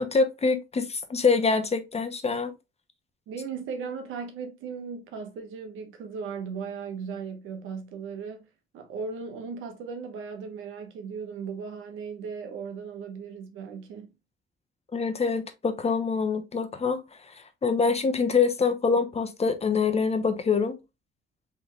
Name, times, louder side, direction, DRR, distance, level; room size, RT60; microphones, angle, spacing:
voice 1, 0.0-2.5 14.9-17.0 17.6-20.8, left 5 dB, 30° left, 0.9 m, -25 dB
voice 2, 3.3-8.5 8.7-14.1, right 5 dB, 85° right, 1.0 m, -37 dB
4.0 x 3.3 x 3.1 m
cardioid pair, 90°, 20 cm